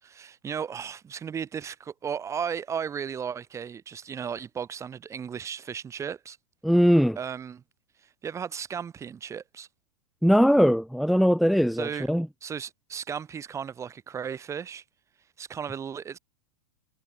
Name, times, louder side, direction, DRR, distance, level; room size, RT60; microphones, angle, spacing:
voice 1, 0.0-6.4 7.2-7.6 8.2-9.7 11.8-12.1 12.4-14.8 15.4-16.2, right 7 dB, 20° right, 4.8 m, -35 dB
voice 2, 6.6-7.2 10.2-12.3, equal, ahead, 0.6 m, -20 dB
hypercardioid pair, 120°, 14 cm